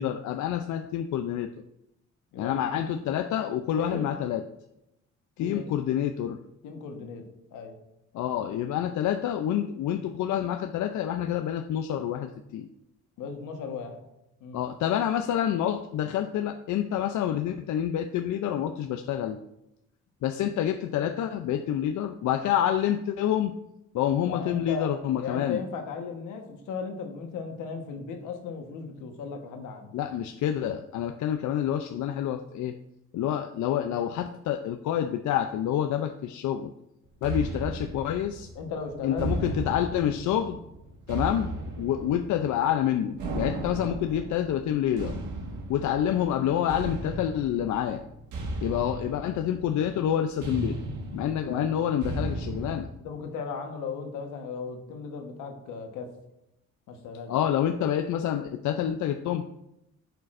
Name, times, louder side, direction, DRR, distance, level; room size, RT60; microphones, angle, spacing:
voice 1, 0.0-1.5 2.4-4.4 5.4-6.4 8.1-12.7 14.5-19.4 20.2-23.5 23.9-25.6 29.9-32.8 33.1-36.7 37.2-38.5 39.0-40.6 41.1-45.2 45.7-48.0 48.6-50.8 51.1-52.9 57.3-59.4, left 10 dB, 75° left, 7 dB, 0.5 m, -28 dB
voice 2, 2.3-2.9 3.7-4.0 5.4-5.7 6.6-7.2 7.5-7.7 13.2-14.0 14.4-14.6 24.2-29.9 38.5-39.3 51.4-51.7 53.0-56.1 56.9-57.3, left 5 dB, 90° left, 4 dB, 1.3 m, -36 dB
sound 1, 37.2-52.8, right 2 dB, 85° right, 1.7 m, -36 dB
10.5 x 6.7 x 2.6 m, 0.86 s
cardioid pair, 90°, 30 cm